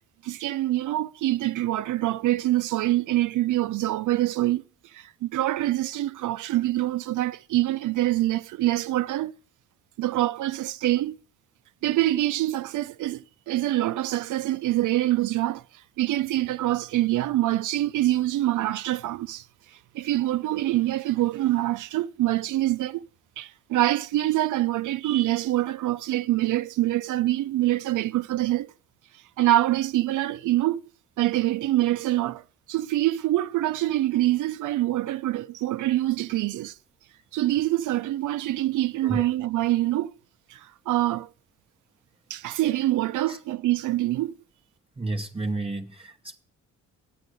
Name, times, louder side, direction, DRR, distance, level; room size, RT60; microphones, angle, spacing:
voice 1, 0.2-9.3 10.0-11.2 11.8-23.1 23.4-28.7 29.1-30.9 31.2-32.4 32.7-36.8 37.3-40.1 40.5-41.3 42.3-44.3, right 15 dB, 80° right, 0.6 m, -25 dB
voice 2, 45.0-46.4, right 2 dB, 20° right, 1.0 m, -31 dB
12.5 x 9.4 x 7.8 m
cardioid pair, 135°, 30 cm